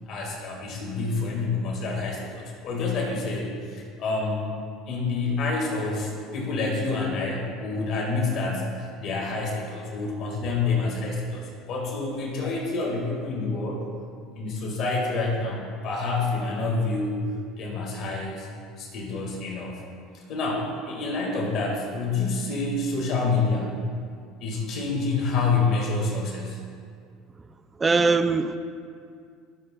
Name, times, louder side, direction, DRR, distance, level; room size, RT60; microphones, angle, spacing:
voice 1, 0.1-4.4 4.9-13.8 14.4-17.2 17.6-18.5 18.8-19.8 20.3-23.8 24.4-26.6, left 3 dB, 55° left, -2 dB, 2.4 m, -28 dB
voice 2, 27.8-28.6, right 4 dB, 20° right, 10 dB, 0.5 m, -21 dB
19.0 x 7.6 x 2.6 m, 2.2 s
supercardioid pair, 105°, 0 cm